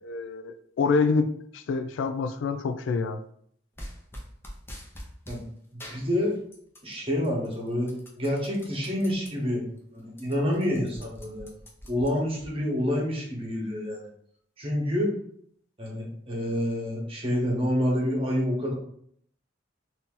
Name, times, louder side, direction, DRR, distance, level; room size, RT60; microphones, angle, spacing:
voice 1, 0.0-3.2, left 4 dB, 85° left, 10 dB, 0.3 m, -27 dB
sound 1, 3.8-5.4 5.8-6.9 7.2-9.3 9.7-9.8 10.1-12.5, equal, 15° left, 0.6 m, -44 dB
voice 2, 5.9-6.3 6.8-9.6 9.9-11.5 11.9-14.0 14.6-15.1 15.8-18.7, equal, 30° right, -3 dB, 1.1 m, -27 dB
2.8 x 2.7 x 3.6 m, 0.65 s
head